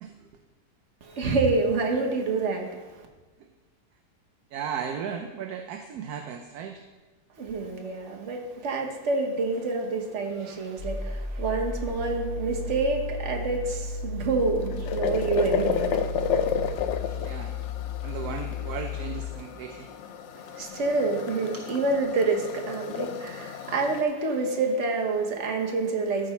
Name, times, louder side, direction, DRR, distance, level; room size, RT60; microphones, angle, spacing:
voice 1, 1.0-3.1 7.4-16.0 20.4-26.3, right 3 dB, 45° right, 2 dB, 1.4 m, -27 dB
voice 2, 4.5-6.8 17.0-17.6 18.0-19.9 21.4-21.6, right 7 dB, 70° right, 6 dB, 1.1 m, -36 dB
sound 1, 10.8-19.3, left 3 dB, 50° left, 2.2 m, -34 dB
sound 2, 14.2-24.0, left 7 dB, 85° left, 0.6 m, -32 dB
13.5 x 5.1 x 4.3 m, 1.2 s
omnidirectional pair, 1.8 m